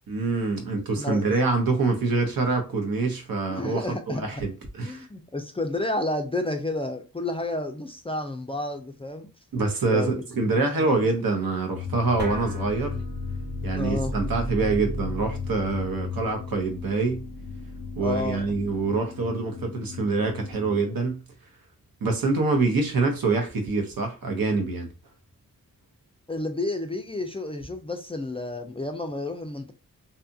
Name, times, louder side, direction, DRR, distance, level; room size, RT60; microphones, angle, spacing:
voice 1, 0.1-5.1 9.5-13.0 13.6-17.2 18.0-21.2 22.0-24.9, right 3 dB, 80° right, 0.8 m, -25 dB
voice 2, 3.5-4.2 4.8-9.3 9.9-10.2 13.7-14.1 18.0-18.4 26.3-29.7, left 2 dB, 15° left, 0.3 m, -30 dB
sound 1, 11.7-20.8, left 7 dB, 80° left, 0.5 m, -37 dB
sound 2, 12.2-18.9, right 1 dB, 30° right, 0.8 m, -36 dB
2.7 x 2.3 x 2.6 m
wide cardioid pair, 100°, 35 cm